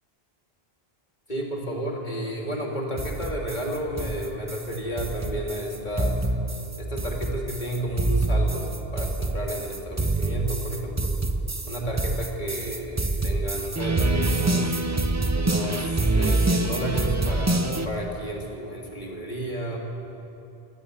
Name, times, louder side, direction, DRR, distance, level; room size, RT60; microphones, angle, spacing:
voice 1, 1.3-6.3 6.8-10.9 11.7-14.8 15.3-19.8, right 1 dB, 45° left, -1 dB, 3.3 m, -32 dB
sound 1, 3.0-17.9, right 2 dB, 20° right, 0.7 m, -26 dB
23.0 x 13.5 x 8.3 m, 2.9 s
omnidirectional pair, 1.1 m